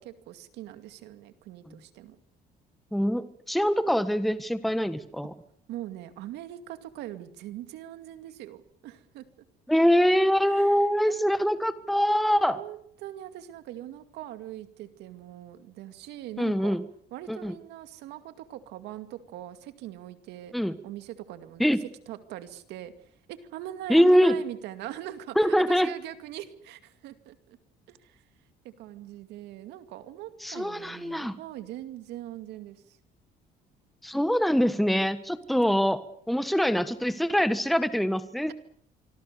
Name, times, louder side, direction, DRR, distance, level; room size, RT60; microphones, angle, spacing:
voice 1, 0.0-2.2 5.7-9.2 10.4-11.5 12.5-16.8 17.1-20.5 20.8-27.6 27.9-28.2 28.6-33.0, right 13 dB, 85° right, 10 dB, 2.4 m, -42 dB
voice 2, 2.9-5.3 9.7-12.6 16.4-16.8 17.3-17.5 20.5-20.7 21.6-21.8 23.9-24.3 25.4-25.9 30.4-31.3 34.0-36.0 36.3-38.5, equal, ahead, 12 dB, 1.4 m, -24 dB
25.5 x 25.0 x 6.9 m, 0.63 s
cardioid pair, 110°, 17 cm